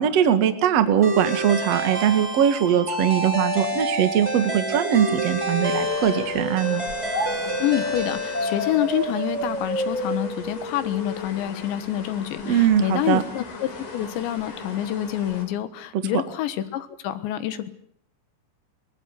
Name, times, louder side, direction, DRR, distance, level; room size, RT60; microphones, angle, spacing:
voice 1, 0.0-6.8 12.4-13.2 15.9-16.0, right 9 dB, 60° right, 8 dB, 1.7 m, -21 dB
sound 1, 1.0-9.1, equal, 5° right, 2.9 m, -28 dB
sound 2, 4.5-7.3 8.3-11.3, equal, 10° left, 3.2 m, -30 dB
sound 3, 5.8-15.5, left 3 dB, 45° left, 5.6 m, -39 dB
voice 2, 7.6-17.7, left 12 dB, 70° left, 12 dB, 3.3 m, -27 dB
22.5 x 21.5 x 8.3 m, 0.65 s
omnidirectional pair, 6.0 m